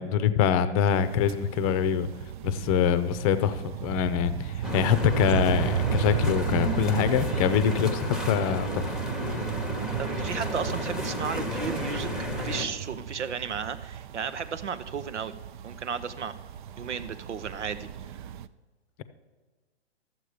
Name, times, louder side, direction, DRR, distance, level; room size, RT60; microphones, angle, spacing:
voice 1, 0.0-2.1 2.4-9.0 9.3-9.4, left 8 dB, 30° left, 13 dB, 0.6 m, -25 dB
sound 1, 0.9-18.5, right 9 dB, 45° right, 0.4 m, -35 dB
sound 2, 4.6-12.7, equal, ahead, 0.9 m, -32 dB
voice 2, 10.0-12.1 12.3-15.3 15.6-16.3 16.8-18.2, right 6 dB, 90° right, 12 dB, 0.8 m, -34 dB
13.0 x 7.5 x 5.0 m, 1.4 s
hypercardioid pair, 130°, 34 cm